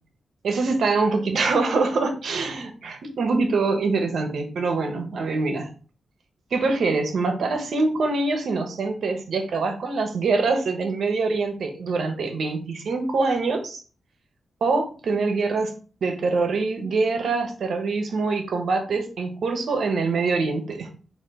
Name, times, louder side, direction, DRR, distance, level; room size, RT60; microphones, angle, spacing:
voice 1, 0.4-5.7 6.5-13.8 14.6-15.7 16.0-20.9, right 3 dB, 75° right, 5 dB, 1.0 m, -24 dB
4.3 x 2.8 x 4.2 m, 0.38 s
wide cardioid pair, 120°, 0 cm